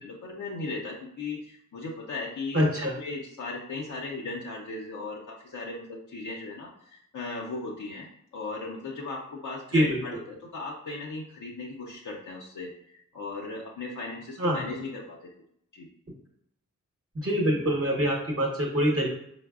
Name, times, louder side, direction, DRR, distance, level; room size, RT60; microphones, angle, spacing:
voice 1, 0.0-2.7 3.0-8.1 8.3-15.3 15.7-15.9, left 3 dB, 70° left, -2 dB, 0.6 m, -37 dB
voice 2, 2.5-2.9 9.7-10.0 14.4-14.6 17.2-19.1, equal, 45° right, -1 dB, 0.9 m, -24 dB
4.4 x 2.0 x 2.3 m, 0.72 s
cardioid pair, 40°, 33 cm